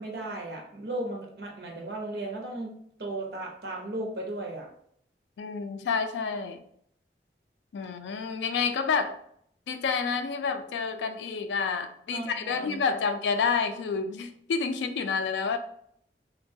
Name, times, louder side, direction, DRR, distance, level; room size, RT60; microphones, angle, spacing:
voice 1, 0.0-4.7 12.1-13.0, right 2 dB, 65° right, 1 dB, 0.6 m, -36 dB
voice 2, 5.4-6.6 7.7-9.2 9.7-15.6, left 5 dB, 80° left, 8 dB, 0.3 m, -29 dB
3.0 x 2.2 x 2.6 m, 0.69 s
head